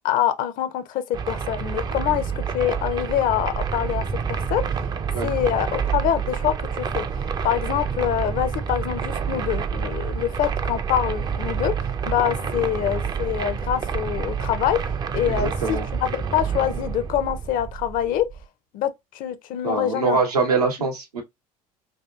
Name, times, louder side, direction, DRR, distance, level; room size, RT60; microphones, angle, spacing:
voice 1, 0.0-4.0 4.3-4.6 5.2-7.1 7.4-11.7 12.1-14.8 15.1-18.3 18.7-20.2 20.8-20.9, left 10 dB, 45° left, 0.5 m, -25 dB
sound 1, 1.1-18.5, right 6 dB, 20° right, 0.3 m, -28 dB
voice 2, 15.4-15.9 19.6-21.2, right 4 dB, 90° right, 0.8 m, -23 dB
2.7 x 2.3 x 2.2 m
hypercardioid pair, 75°, 19 cm